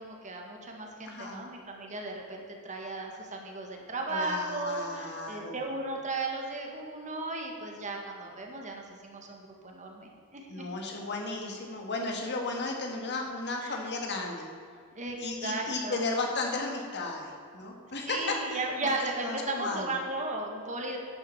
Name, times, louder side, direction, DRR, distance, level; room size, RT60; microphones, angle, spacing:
voice 1, 0.0-10.7 13.6-13.8 14.9-16.0 18.1-21.0, right 2 dB, 35° right, 1 dB, 1.7 m, -35 dB
voice 2, 1.1-1.4 4.1-5.6 10.5-14.5 15.2-18.9 19.2-19.9, left 3 dB, 55° left, 1 dB, 1.9 m, -34 dB
11.0 x 7.8 x 7.2 m, 2.3 s
head